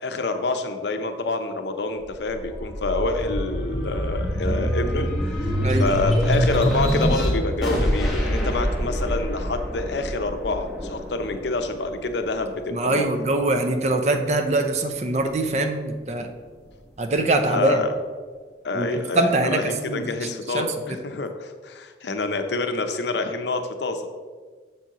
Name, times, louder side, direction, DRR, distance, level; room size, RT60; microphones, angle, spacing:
voice 1, 0.0-5.5 5.8-13.1 17.5-17.9 18.6-24.1, left 3 dB, 70° left, 7 dB, 0.6 m, -27 dB
sound 1, 2.0-12.8 13.3-14.5, equal, ahead, 1.3 m, -25 dB
voice 2, 12.7-16.3 17.0-17.9 18.7-21.0, right 2 dB, 35° right, 7 dB, 0.5 m, -23 dB
7.3 x 6.9 x 2.9 m, 1.5 s
head